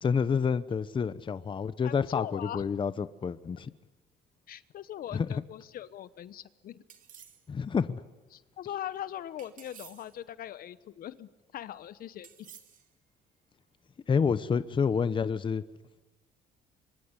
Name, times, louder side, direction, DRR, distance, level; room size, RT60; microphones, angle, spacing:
voice 1, 0.0-3.7 5.1-5.3 7.5-8.0 14.1-15.6, left 6 dB, 30° left, 14 dB, 0.9 m, -28 dB
voice 2, 1.8-2.6 4.5-6.8 8.3-12.5, left 11 dB, 60° left, 16 dB, 1.0 m, -41 dB
sound 1, 6.9-7.5 9.4-10.2 12.2-12.9, right 8 dB, 50° right, 2.6 m, -52 dB
24.5 x 24.0 x 9.8 m, 1.1 s
cardioid pair, 110°, 17 cm